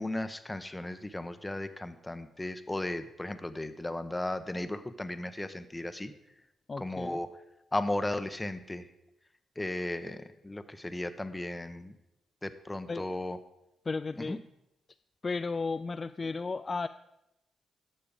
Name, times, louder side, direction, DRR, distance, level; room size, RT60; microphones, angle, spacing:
voice 1, 0.0-6.1 6.8-7.3 7.7-8.9 9.6-12.0 12.4-13.4 14.3-14.4, left 1 dB, 15° left, 11 dB, 0.9 m, -35 dB
voice 2, 6.7-7.2 12.9-13.1 13.9-14.4 15.2-16.9, left 4 dB, 40° left, 11 dB, 0.3 m, -34 dB
11.5 x 6.8 x 5.0 m, 0.89 s
hypercardioid pair, 40°, 0 cm